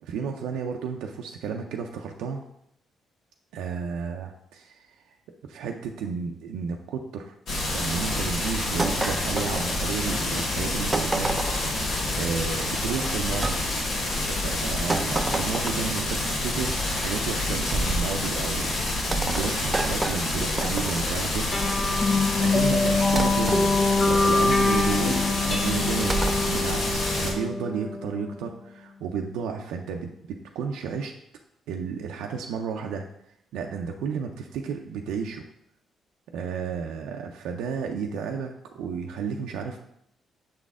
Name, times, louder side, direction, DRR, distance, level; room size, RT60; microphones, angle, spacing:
voice 1, 0.0-2.4 3.5-4.9 5.5-7.3 7.7-11.4 12.2-13.8 14.2-21.8 22.4-23.7 24.0-25.2 25.5-31.1 31.7-33.1 33.5-35.5 36.3-39.8, right 6 dB, 90° right, 2 dB, 0.5 m, -32 dB
sound 1, 7.5-27.3, left 2 dB, 65° left, 1.5 m, -28 dB
sound 2, 8.8-10.2 10.9-11.8 13.4-13.6 14.9-16.0 17.7-18.1 19.1-21.2 23.2-23.7 26.1-26.5, right 3 dB, 25° right, 0.5 m, -29 dB
sound 3, 21.5-28.4, left 3 dB, 45° left, 0.8 m, -24 dB
6.5 x 4.1 x 3.6 m, 0.76 s
cardioid pair, 85°, 0 cm